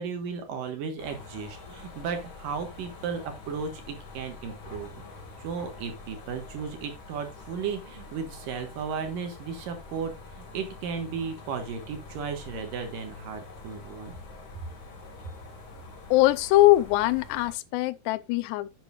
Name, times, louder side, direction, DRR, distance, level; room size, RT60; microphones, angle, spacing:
voice 1, 0.0-4.9 5.4-14.2, right 6 dB, 65° right, 2.7 m, -35 dB
sound 1, 1.0-17.5, left 3 dB, 45° left, 1.7 m, -46 dB
voice 2, 16.1-18.7, left 17 dB, 90° left, 2.8 m, -22 dB
10.0 x 9.3 x 2.5 m
omnidirectional pair, 4.8 m